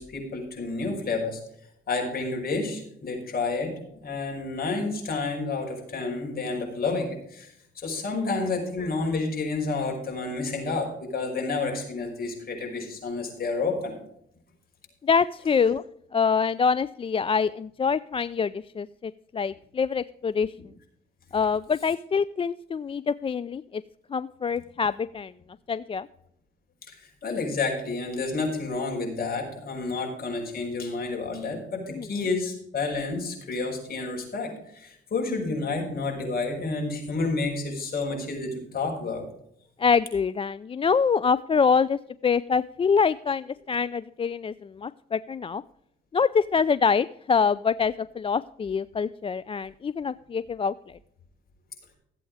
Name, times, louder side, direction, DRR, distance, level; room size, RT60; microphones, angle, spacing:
voice 1, 0.0-1.4 1.9-14.0 15.5-15.7 26.9-39.3, left 3 dB, 50° left, 1 dB, 5.4 m, -30 dB
voice 2, 15.0-15.8 16.1-20.5 21.3-23.8 24.1-25.3 25.7-26.1 32.0-32.1 39.8-45.6 46.1-50.7, left 5 dB, 30° left, 16 dB, 0.4 m, -25 dB
15.0 x 8.4 x 4.9 m, 0.73 s
cardioid pair, 90°, 20 cm